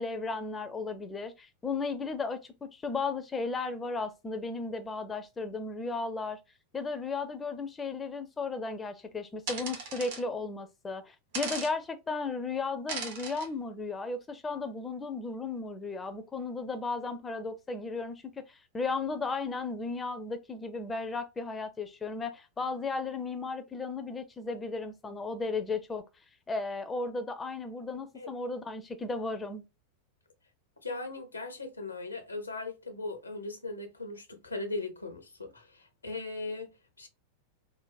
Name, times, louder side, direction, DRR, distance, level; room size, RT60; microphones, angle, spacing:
voice 1, 0.0-6.4 6.7-26.0 26.5-29.6, left 3 dB, 15° left, 0.4 m, -35 dB
sound 1, 9.5-10.2 11.3-11.7 12.9-13.5, right 4 dB, 55° right, 1.1 m, -37 dB
voice 2, 30.8-37.1, left 3 dB, 80° left, 0.6 m, -39 dB
3.2 x 2.1 x 2.2 m
figure-of-eight pair, 90°, 0 cm